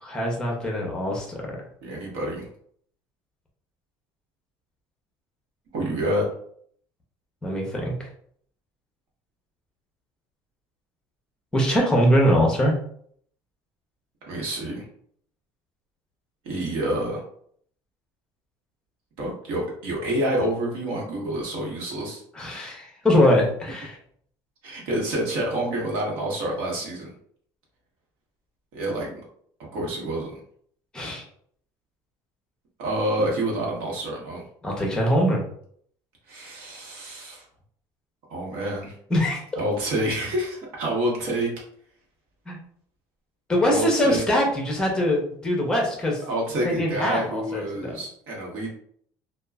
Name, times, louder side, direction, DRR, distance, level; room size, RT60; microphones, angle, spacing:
voice 1, 0.0-1.4 7.4-7.9 11.5-12.7 22.3-24.0 30.9-31.2 34.6-35.4 39.1-39.4 42.5-42.6 43.5-46.2 46.6-47.9, equal, 10° left, -1 dB, 0.6 m, -22 dB
voice 2, 1.8-2.5 5.7-6.2 14.3-14.9 16.4-17.2 19.2-22.2 24.6-27.1 28.7-29.2 29.6-30.4 32.8-34.4 36.3-37.4 38.3-38.9 39.6-41.5 43.6-44.2 46.3-48.7, right 1 dB, 70° right, -2 dB, 1.1 m, -28 dB
2.9 x 2.2 x 2.3 m, 0.62 s
cardioid pair, 170°, 9 cm